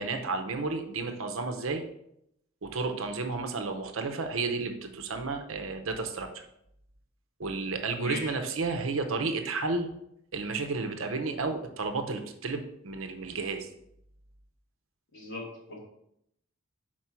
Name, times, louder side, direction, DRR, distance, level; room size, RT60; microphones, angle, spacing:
voice 1, 0.0-1.8 2.6-6.4 7.4-9.9 10.3-13.7, right 3 dB, 75° right, 6 dB, 0.8 m, -32 dB
voice 2, 8.0-8.3 15.1-15.8, left 1 dB, 65° left, -4 dB, 2.6 m, -37 dB
5.9 x 4.5 x 4.4 m, 0.76 s
head